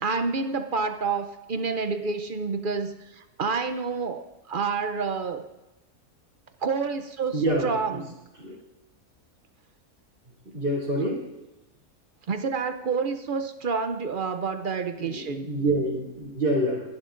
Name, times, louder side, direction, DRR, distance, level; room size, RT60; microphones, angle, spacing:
voice 1, 0.0-5.5 6.6-8.2 12.3-15.5, right 5 dB, 55° right, 8 dB, 0.5 m, -29 dB
voice 2, 7.3-7.7 8.4-8.6 10.5-11.2 15.0-16.8, right 1 dB, 40° right, -8 dB, 3.0 m, -26 dB
26.0 x 11.0 x 2.5 m, 1.0 s
omnidirectional pair, 1.5 m